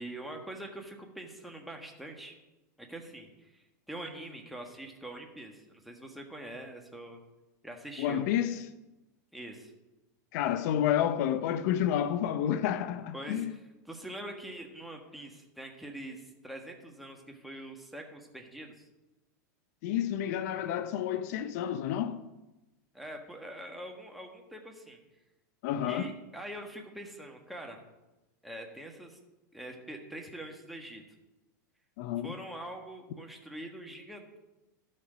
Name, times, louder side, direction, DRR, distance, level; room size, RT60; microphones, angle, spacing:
voice 1, 0.0-2.3 2.8-7.2 7.6-8.2 9.3-9.7 13.1-18.9 22.9-25.0 25.8-27.8 28.4-29.2 29.5-31.0 32.2-34.4, right 1 dB, ahead, 1.6 m, -44 dB
voice 2, 8.0-8.6 10.3-13.5 19.8-22.2 25.6-26.1 32.0-32.3, left 10 dB, 60° left, 0.6 m, -30 dB
12.5 x 6.5 x 5.1 m
supercardioid pair, 130°, 10 cm